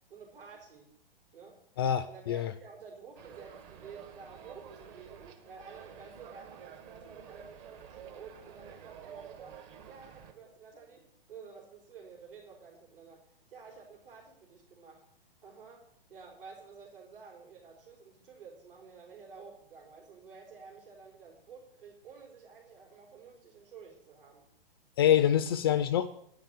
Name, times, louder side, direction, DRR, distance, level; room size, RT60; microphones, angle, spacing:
voice 1, 0.1-0.9 1.3-1.6 2.1-9.6 9.9-15.0 15.4-24.5 25.0-25.2, right 5 dB, 65° right, -1 dB, 4.5 m, -51 dB
voice 2, 1.8-2.5 25.0-26.1, left 10 dB, 25° left, 12 dB, 0.4 m, -26 dB
sound 1, 3.2-10.3, right 8 dB, 35° right, 1.4 m, -50 dB
10.0 x 5.7 x 8.2 m, 0.69 s
figure-of-eight pair, 125°, 30 cm